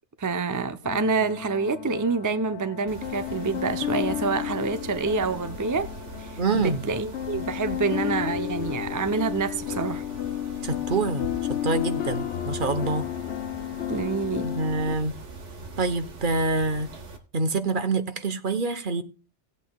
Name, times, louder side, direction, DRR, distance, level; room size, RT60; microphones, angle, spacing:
voice 1, 0.2-5.9 6.2-10.0 13.9-14.5, right 4 dB, 25° right, 0.5 m, -27 dB
sound 1, 0.8-15.0, left 12 dB, 75° left, 1.0 m, -32 dB
Mechanisms, 2.9-17.2, right 2 dB, 85° right, 1.7 m, -41 dB
voice 2, 6.4-6.8 10.6-13.0 14.4-15.2 15.8-16.9 17.3-19.0, right 3 dB, 50° right, 1.0 m, -26 dB
17.5 x 8.2 x 2.3 m
omnidirectional pair, 1.2 m